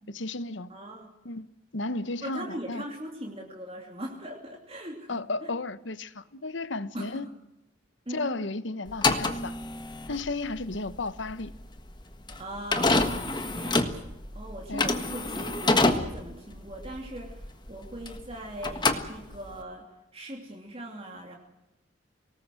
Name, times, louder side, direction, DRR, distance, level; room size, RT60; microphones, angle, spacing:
voice 1, 0.0-0.7 1.2-1.5 1.7-2.8 5.1-7.3 8.1-9.5 10.1-11.5 14.7-14.9, left 2 dB, 75° left, 1.1 m, -33 dB
voice 2, 0.7-1.1 2.2-5.1 5.4-5.5 6.9-7.3 8.1-8.3 12.4-17.4 17.7-19.9 20.1-21.4, right 1 dB, 30° right, 2.8 m, -40 dB
sound 1, 8.9-18.3 18.6-19.6, left 2 dB, 25° left, 1.5 m, -27 dB
24.0 x 19.0 x 7.8 m
head